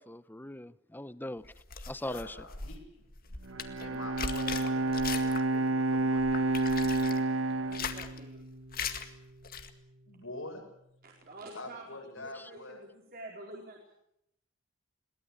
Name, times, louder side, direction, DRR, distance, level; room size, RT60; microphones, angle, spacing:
voice 1, 0.0-1.5 1.9-2.4 12.4-12.5, left 1 dB, 10° left, 0.8 m, -40 dB
sound 1, 1.4-5.6 5.9-7.2 7.6-8.2 8.7-9.1 9.4-9.7, left 6 dB, 50° left, 2.0 m, -39 dB
voice 2, 2.1-2.8 3.8-7.2 10.1-10.6 11.5-12.8, left 2 dB, 80° left, 7.1 m, -46 dB
Bowed string instrument, 3.4-8.9, right 2 dB, 85° right, 1.4 m, -30 dB
voice 3, 7.6-8.4 11.0-11.8 12.2-14.0, right 2 dB, 50° right, 4.3 m, -48 dB
22.5 x 18.5 x 8.9 m
head